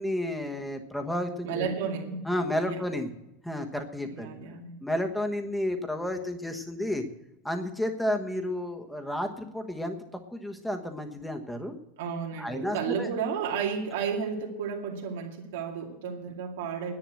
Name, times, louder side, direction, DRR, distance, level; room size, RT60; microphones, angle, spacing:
voice 1, 0.0-1.7 2.2-3.1 3.4-4.3 4.8-7.0 7.4-10.0 10.3-11.7 12.4-13.1, left 1 dB, ahead, 4 dB, 1.2 m, -31 dB
voice 2, 1.4-2.2 2.6-2.8 4.1-4.7 12.0-17.0, right 6 dB, 80° right, 0 dB, 2.3 m, -32 dB
10.5 x 10.5 x 7.7 m, 0.89 s
supercardioid pair, 155°, 0 cm